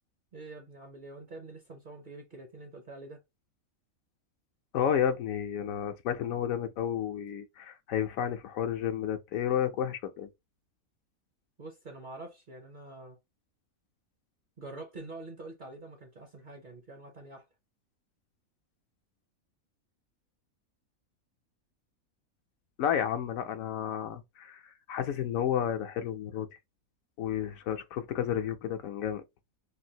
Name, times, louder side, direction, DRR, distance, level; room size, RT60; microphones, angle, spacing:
voice 1, 0.3-3.2 11.6-13.2 14.6-17.5, right 2 dB, 50° right, 0.6 m, -46 dB
voice 2, 4.7-10.3 22.8-26.5 27.2-29.2, left 9 dB, 75° left, 1.0 m, -31 dB
3.3 x 2.5 x 2.8 m
omnidirectional pair, 1.5 m